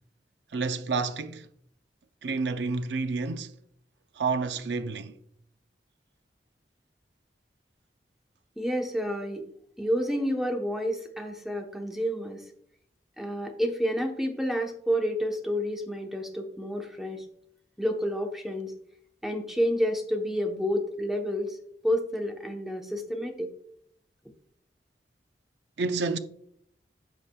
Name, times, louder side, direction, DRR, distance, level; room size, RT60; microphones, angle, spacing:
voice 1, 0.5-1.5 2.2-3.5 4.2-5.2 25.8-26.2, right 4 dB, 80° right, 0.5 m, -29 dB
voice 2, 8.6-9.4 9.8-12.4 13.2-17.2 17.8-18.7 19.2-21.6 21.8-23.5, equal, ahead, 0.9 m, -29 dB
14.0 x 4.9 x 2.3 m
head